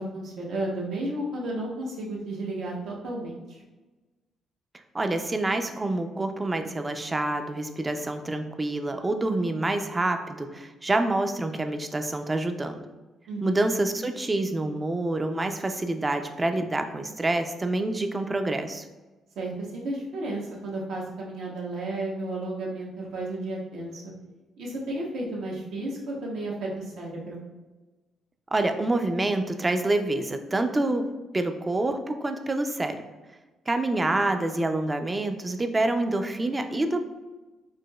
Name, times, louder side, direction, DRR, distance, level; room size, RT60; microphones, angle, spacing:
voice 1, 0.0-3.6 13.3-13.6 19.4-24.1 24.6-27.4, right 1 dB, 80° right, -3 dB, 0.9 m, -33 dB
voice 2, 4.9-12.8 13.4-18.8 28.5-31.0 31.3-33.0 33.7-37.0, right 2 dB, 20° right, 7 dB, 0.3 m, -27 dB
4.9 x 2.1 x 2.2 m, 1.2 s
cardioid pair, 90°, 0 cm